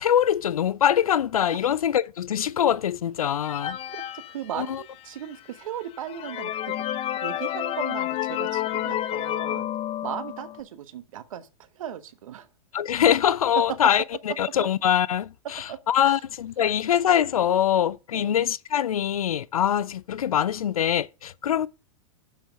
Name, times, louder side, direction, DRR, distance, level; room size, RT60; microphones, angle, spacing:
voice 1, 0.0-3.8 4.6-4.8 12.7-21.7, left 9 dB, 85° left, 0.5 m, -23 dB
sound 1, 3.4-5.1 5.6-5.7 6.1-10.6, left 12 dB, 35° left, 0.7 m, -30 dB
voice 2, 3.9-9.7 10.0-12.5 15.7-15.8 16.0-16.2 18.1-18.4, right 10 dB, 70° right, 1.3 m, -37 dB
7.4 x 5.8 x 6.4 m
hypercardioid pair, 110°, 18 cm